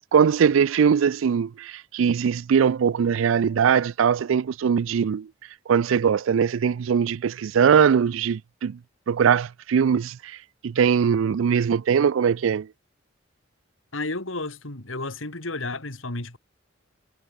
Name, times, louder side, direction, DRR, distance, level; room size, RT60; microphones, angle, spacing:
voice 1, 0.0-5.3 5.7-8.8 9.1-10.4 10.6-12.7, right 7 dB, 80° right, 0.4 m, -21 dB
voice 2, 13.9-16.4, left 2 dB, 85° left, 3.3 m, -32 dB
head